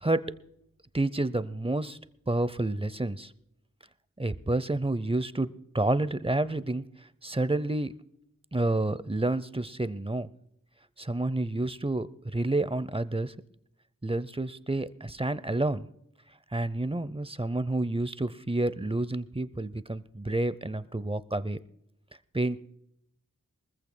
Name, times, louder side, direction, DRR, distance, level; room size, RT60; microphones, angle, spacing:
voice 1, 0.9-2.0 2.3-3.3 4.2-5.5 5.7-7.9 8.5-10.3 11.0-13.3 14.0-15.9 16.5-21.6 22.3-22.6, right 2 dB, 15° right, 16 dB, 0.6 m, -29 dB
23.5 x 14.5 x 2.2 m, 0.78 s
wide cardioid pair, 70°, 33 cm